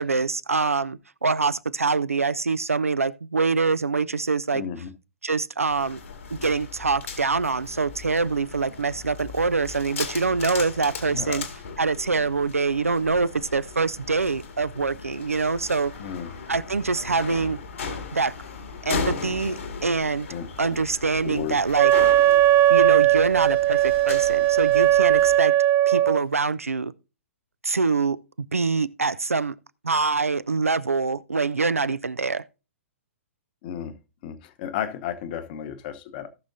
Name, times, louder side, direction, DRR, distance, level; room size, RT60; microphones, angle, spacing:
voice 1, 0.0-4.6 5.2-6.0 6.3-11.4 11.8-15.9 16.5-17.6 18.1-18.3 18.8-20.3 20.6-21.9 22.7-25.5 25.9-26.9 27.6-29.6 29.8-32.4, right 4 dB, 85° right, 0.5 m, -25 dB
voice 2, 4.5-4.9 11.0-11.4 16.0-16.3 20.3-20.8 21.2-21.6 33.6-34.0 34.2-36.3, left 9 dB, 40° left, 1.0 m, -33 dB
sound 1, 5.7-25.4, left 5 dB, 70° left, 2.0 m, -37 dB
Wind instrument woodwind instrument, 21.8-26.2, right 13 dB, 20° right, 0.4 m, -18 dB
17.0 x 6.1 x 2.7 m
figure-of-eight pair, 120°, 7 cm